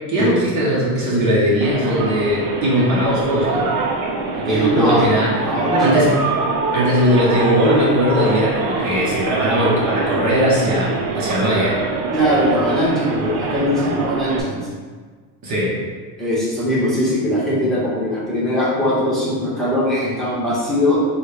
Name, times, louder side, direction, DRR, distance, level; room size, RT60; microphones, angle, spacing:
voice 1, 0.1-3.7 4.4-5.3 5.8-6.1 6.7-11.8 15.4-15.7, equal, 40° right, -5 dB, 1.1 m, -19 dB
sound 1, 1.6-14.4, right 3 dB, 75° right, 0.8 m, -24 dB
voice 2, 4.5-5.0 5.4-6.1 12.1-14.7 16.2-21.0, left 1 dB, ahead, -9 dB, 1.2 m, -20 dB
6.4 x 2.4 x 3.3 m, 1.5 s
supercardioid pair, 125°, 46 cm